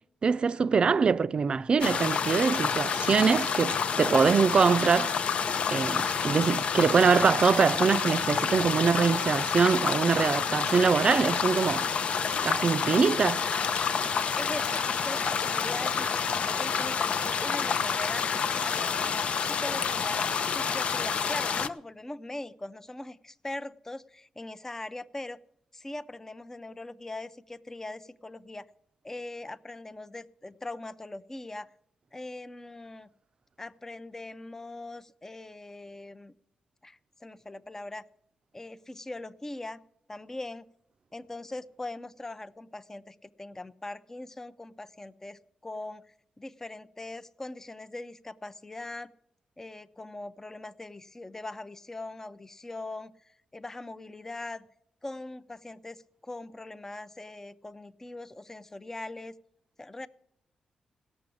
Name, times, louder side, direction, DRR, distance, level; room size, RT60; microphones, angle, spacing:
voice 1, 0.2-5.1 5.7-11.9 12.4-13.5, right 5 dB, 50° right, 0.4 m, -24 dB
sound 1, 1.8-21.7, left 6 dB, 65° left, 0.6 m, -28 dB
voice 2, 14.3-18.3 18.6-20.3 20.5-25.4 25.7-28.7 29.0-31.7 32.1-33.1 33.6-36.3 36.8-38.0 38.5-39.8 40.1-40.6 41.1-49.1 49.6-54.7 55.0-59.3 59.8-60.1, left 2 dB, 20° left, 0.6 m, -41 dB
17.0 x 6.9 x 8.5 m
cardioid pair, 75°, 2 cm